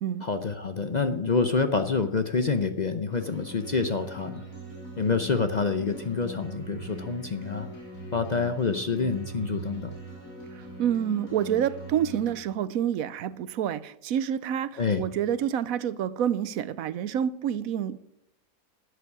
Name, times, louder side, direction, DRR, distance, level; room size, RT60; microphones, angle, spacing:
voice 1, 0.2-4.4 5.0-7.7 8.1-9.9 14.8-15.0, left 4 dB, 40° left, 0.6 m, -27 dB
sound 1, 3.1-12.3, right 2 dB, 75° left, 4.4 m, -41 dB
voice 2, 10.5-18.0, right 9 dB, 80° right, 1.1 m, -28 dB
12.0 x 8.1 x 8.3 m
omnidirectional pair, 1.5 m